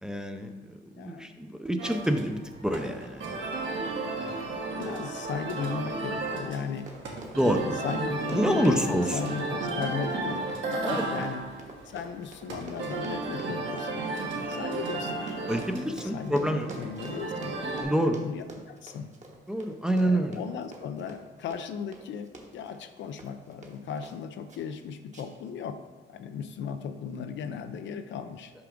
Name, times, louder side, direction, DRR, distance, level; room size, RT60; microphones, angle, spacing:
voice 1, 0.0-3.4 7.3-7.6 8.3-9.2 10.8-11.2 15.5-16.7 17.8-18.2 19.5-20.4, right 1 dB, 5° right, 5 dB, 0.5 m, -27 dB
voice 2, 1.0-1.3 3.9-7.0 7.4-11.4 11.8-14.0 14.5-15.4 15.8-17.6 17.9-19.1 20.0-28.5, left 7 dB, 70° left, 9 dB, 0.5 m, -37 dB
sound 1, 1.8-17.8, right 3 dB, 75° right, 1.4 m, -34 dB
Run, 6.7-24.2 24.5-24.8 25.1-25.5 25.8-25.9, right 2 dB, 35° right, 1.0 m, -49 dB
5.9 x 4.8 x 3.7 m, 1.4 s
cardioid pair, 90°, 20 cm